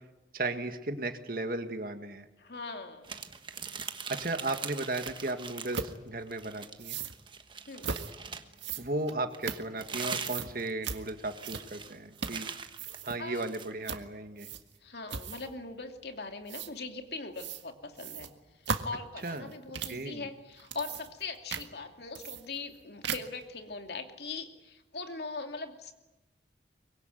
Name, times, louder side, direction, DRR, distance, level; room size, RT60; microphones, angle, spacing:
voice 1, 0.3-2.2 4.1-7.0 8.8-12.5 13.0-14.5 19.2-19.5 19.9-20.3, right 2 dB, 50° right, 7 dB, 1.9 m, -35 dB
voice 2, 2.4-3.2 7.7-7.9 13.2-13.5 14.8-18.3 18.8-25.9, left 3 dB, 65° left, 5 dB, 2.6 m, -41 dB
sound 1, 3.0-6.0 6.3-8.6 9.3-13.7, right 6 dB, 25° right, 1.3 m, -42 dB
sound 2, 5.1-5.2 5.7-5.9 6.8-7.2 7.8-8.1 8.6-10.0 10.2-10.5 10.8-11.0 11.4-11.8 12.2-12.5 12.7-13.2 13.8-14.1 14.4-14.8 15.1-15.5 16.5-16.7 17.4-17.6 18.0-20.0 20.5-21.2 21.5-21.7 22.1-22.8 23.0-23.4, right 6 dB, 90° right, 1.7 m, -37 dB
24.0 x 22.0 x 9.3 m, 1.1 s
head